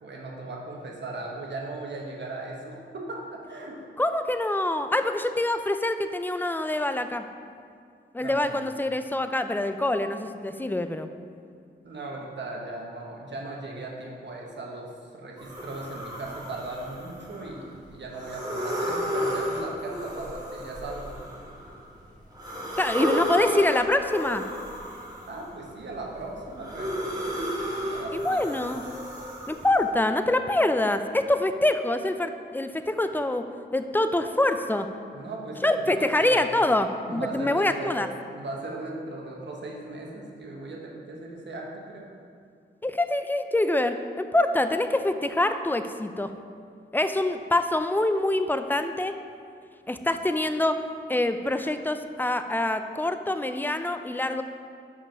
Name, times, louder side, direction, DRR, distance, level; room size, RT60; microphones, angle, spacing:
voice 1, 0.0-3.8 8.1-8.6 11.8-21.2 23.0-23.1 25.2-27.1 27.7-28.8 35.1-36.5 37.0-38.0 38.3-42.1, right 2 dB, 65° right, -1 dB, 1.2 m, -38 dB
voice 2, 4.0-7.2 8.1-11.1 22.8-24.5 28.2-28.8 29.5-33.5 33.7-34.9 35.6-38.1 42.8-46.3 46.9-49.1 49.9-50.8 51.1-54.4, left 1 dB, 10° left, 8 dB, 0.4 m, -25 dB
sound 1, 15.4-17.6 18.1-21.8 22.3-25.5 26.0-29.8, equal, 20° right, 1.8 m, -32 dB
5.5 x 5.2 x 5.2 m, 2.2 s
cardioid pair, 60°, 20 cm